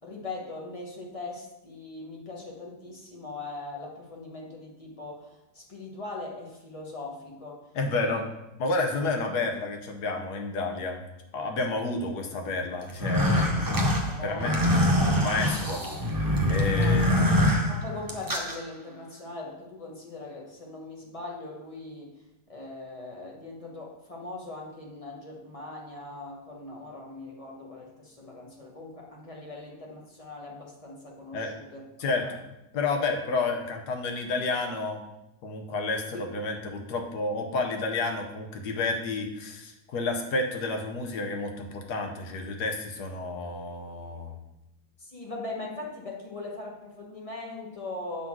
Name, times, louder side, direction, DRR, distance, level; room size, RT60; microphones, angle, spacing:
voice 1, 0.0-7.7 8.0-8.2 11.8-11.9 14.1-14.7 16.7-17.2 17.7-22.1 22.5-31.8 32.2-32.3 36.1-36.2 45.0-48.3, left 2 dB, 25° left, -2 dB, 1.2 m, -40 dB
voice 2, 7.7-8.3 8.6-11.0 11.3-13.8 14.2-14.6 15.1-15.8 16.5-17.2 31.3-31.5 32.0-32.4 32.7-35.0 35.4-44.4, left 3 dB, 80° left, 4 dB, 1.5 m, -30 dB
sound 1, 12.9-18.6, left 1 dB, 20° right, 0.5 m, -24 dB
6.5 x 3.9 x 6.0 m, 0.89 s
omnidirectional pair, 1.7 m